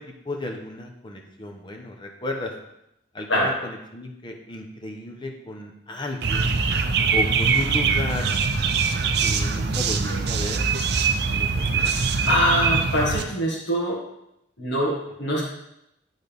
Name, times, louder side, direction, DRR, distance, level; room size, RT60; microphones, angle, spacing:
voice 1, 0.3-2.5 3.1-6.5 7.1-8.3 9.2-10.6 11.3-11.5 11.7-11.9, left 2 dB, 25° left, 1 dB, 0.9 m, -33 dB
sound 1, 6.2-13.2, right 5 dB, 60° right, 0.5 m, -23 dB
voice 2, 12.3-14.0 14.6-15.4, equal, 70° left, -4 dB, 1.7 m, -24 dB
11.5 x 4.0 x 3.5 m, 0.82 s
head